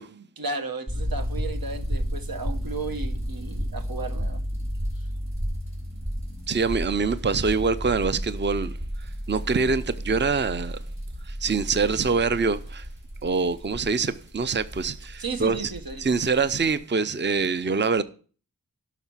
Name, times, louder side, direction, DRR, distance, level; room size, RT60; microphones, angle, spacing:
voice 1, 0.0-4.4 15.2-16.1, right 3 dB, 85° right, 1.1 m, -34 dB
sound 1, 0.9-16.8, equal, 50° right, 3.4 m, -33 dB
voice 2, 6.5-10.8 11.3-12.9 13.2-15.7 16.0-18.0, right 4 dB, 30° right, 0.6 m, -25 dB
11.5 x 5.9 x 5.7 m
wide cardioid pair, 60°, 35 cm